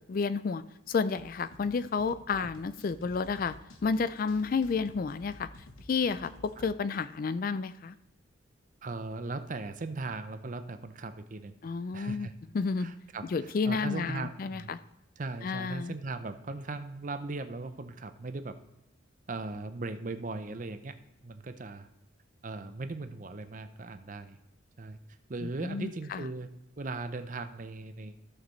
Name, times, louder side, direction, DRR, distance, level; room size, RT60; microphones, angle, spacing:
voice 1, 0.1-0.6 0.9-3.5 3.8-5.5 5.9-7.9 11.6-12.3 12.5-12.9 13.3-14.8 15.4-15.9 25.6-26.2, left 5 dB, 45° left, 14 dB, 0.3 m, -31 dB
sound 1, 1.2-6.7, left 1 dB, 85° left, 1.0 m, -52 dB
voice 2, 8.8-11.6 11.9-12.3 12.8-14.7 15.2-18.6 19.3-20.9 21.2-21.9 22.4-24.4 24.8-25.0 25.3-26.5 26.8-28.2, right 3 dB, 40° right, 10 dB, 0.6 m, -38 dB
14.5 x 6.6 x 3.2 m, 0.91 s
head